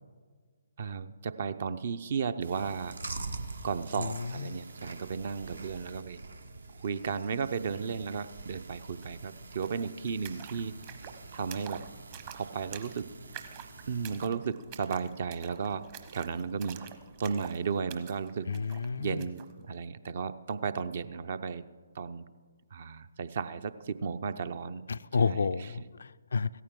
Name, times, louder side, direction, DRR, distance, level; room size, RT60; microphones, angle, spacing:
voice 1, 0.8-2.9 3.6-6.2 6.8-10.7 11.3-11.8 12.3-13.1 13.9-15.9 16.1-16.8 17.2-18.5 19.0-21.6 21.9-22.3 22.7-24.8 25.2-25.7, right 6 dB, 50° right, 14 dB, 0.6 m, -34 dB
Chewing mastication, 2.4-14.2, right 3 dB, 75° right, 1.0 m, -45 dB
voice 2, 4.0-4.6 18.5-19.2 24.9-26.5, left 5 dB, 65° left, 14 dB, 0.4 m, -31 dB
sound 1, 9.0-9.1 9.3-19.5, right 9 dB, 35° right, 1.0 m, -48 dB
16.5 x 14.0 x 3.7 m, 1.5 s
figure-of-eight pair, 140°, 0 cm